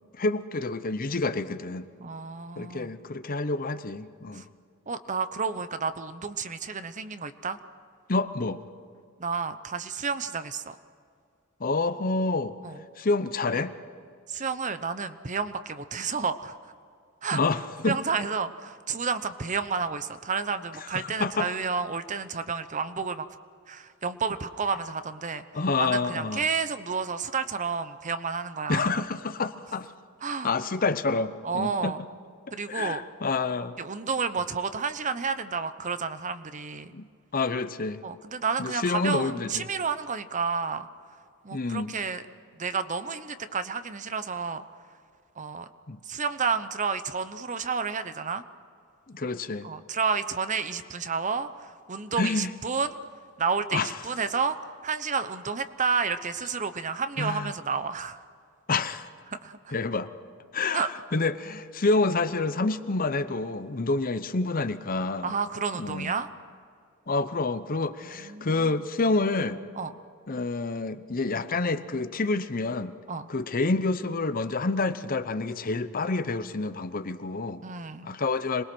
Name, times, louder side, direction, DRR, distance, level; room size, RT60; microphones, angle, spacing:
voice 1, 0.1-1.9 2.6-4.5 8.1-8.6 11.6-12.6 13.0-13.7 17.3-18.0 20.9-21.5 25.5-26.4 28.7-29.9 30.4-31.9 32.5-33.8 36.9-37.1 37.3-38.0 38.6-39.7 41.5-41.9 45.9-46.0 49.1-49.7 52.2-52.5 53.7-53.9 57.2-57.5 58.7-59.1 59.7-60.1 60.5-60.8 61.1-65.4 65.7-66.1 67.1-69.6 70.3-72.9 73.3-77.6 78.0-78.6, left 3 dB, 45° left, 12 dB, 0.8 m, -28 dB
voice 2, 2.0-2.9 4.3-4.4 4.9-7.6 9.2-10.8 12.6-12.8 14.3-16.6 17.2-17.4 17.8-23.3 23.7-25.4 25.8-29.0 30.2-30.5 31.4-32.0 32.5-33.0 33.8-36.9 38.0-40.9 41.4-42.2 42.5-44.6 45.4-45.7 46.0-48.4 49.6-53.0 53.4-54.6 54.8-58.2 59.3-59.8 60.7-60.9 65.2-66.3 68.1-68.8 69.7-69.9 73.1-73.3 77.6-78.1, right 5 dB, 35° right, 11 dB, 0.9 m, -30 dB
26.5 x 20.5 x 6.2 m, 2.2 s
head